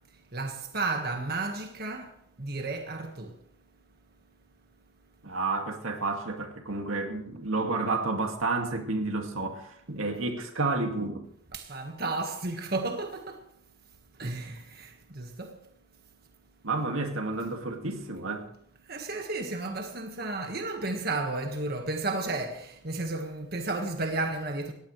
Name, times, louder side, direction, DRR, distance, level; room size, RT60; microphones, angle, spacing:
voice 1, 0.3-2.1 2.4-3.3 11.5-13.4 14.2-15.5 18.9-24.7, right 2 dB, 50° right, 1.6 m, -33 dB
voice 2, 5.2-11.2 16.6-18.5, right 3 dB, 85° right, 2.1 m, -30 dB
19.0 x 15.5 x 3.2 m
head